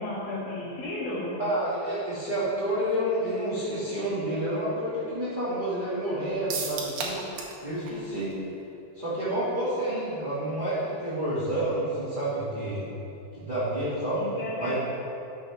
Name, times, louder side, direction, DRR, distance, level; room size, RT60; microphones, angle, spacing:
voice 1, 0.0-1.3 9.9-10.0 14.2-14.7, left 1 dB, 65° left, -8 dB, 3.9 m, -33 dB
voice 2, 1.4-7.2 7.6-8.3 8.9-12.8 13.3-14.2 14.6-14.7, right 1 dB, 30° right, -13 dB, 0.9 m, -29 dB
sound 1, 6.5-7.6 7.9-8.0 8.3-8.4, right 5 dB, 90° right, 1.5 m, -33 dB
12.5 x 7.0 x 3.4 m, 2.7 s
omnidirectional pair, 4.5 m